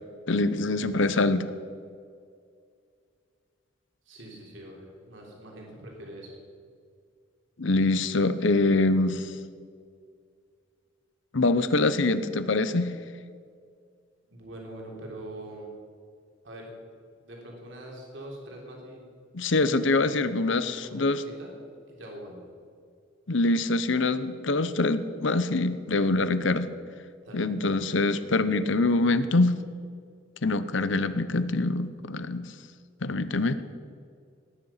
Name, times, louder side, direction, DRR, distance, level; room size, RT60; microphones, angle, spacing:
voice 1, 0.3-1.5 7.6-9.3 11.3-12.9 19.3-21.2 23.3-26.7 27.3-29.6 30.4-32.5 33.0-33.6, left 2 dB, 65° left, 13 dB, 0.8 m, -24 dB
voice 2, 4.1-6.3 14.3-15.7 16.4-16.7 17.2-19.1 19.8-21.6 21.9-22.4 27.2-27.5, right 1 dB, 65° right, -2 dB, 3.6 m, -43 dB
18.5 x 11.0 x 5.7 m, 2.2 s
head